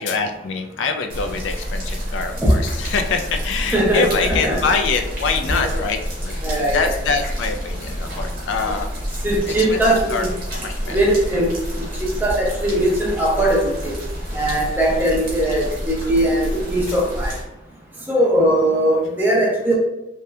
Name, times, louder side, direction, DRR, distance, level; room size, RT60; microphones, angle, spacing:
voice 1, 0.0-8.9 9.5-10.3 10.6-11.0 16.9-17.0, left 5 dB, 75° left, 6 dB, 0.3 m, -25 dB
sound 1, 1.1-17.4, equal, 50° right, 0.8 m, -29 dB
voice 2, 3.7-4.6 5.5-5.7 6.4-6.9 9.2-10.3 10.8-11.8 12.2-14.0 14.3-17.3 18.1-19.8, right 1 dB, 10° right, -3 dB, 0.5 m, -20 dB
2.8 x 2.1 x 2.3 m, 0.92 s
head